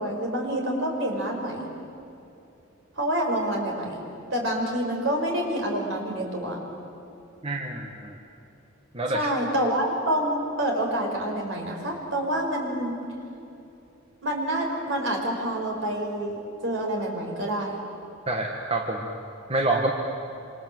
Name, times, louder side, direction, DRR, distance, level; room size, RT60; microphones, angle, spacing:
voice 1, 0.0-1.7 3.0-4.0 4.3-6.6 9.1-13.0 14.2-17.8, right 1 dB, 65° right, 1 dB, 5.5 m, -27 dB
voice 2, 7.4-8.1 8.9-9.3 18.3-19.1 19.5-19.9, right 2 dB, 30° right, 1 dB, 1.7 m, -27 dB
27.5 x 26.0 x 7.8 m, 2.8 s
head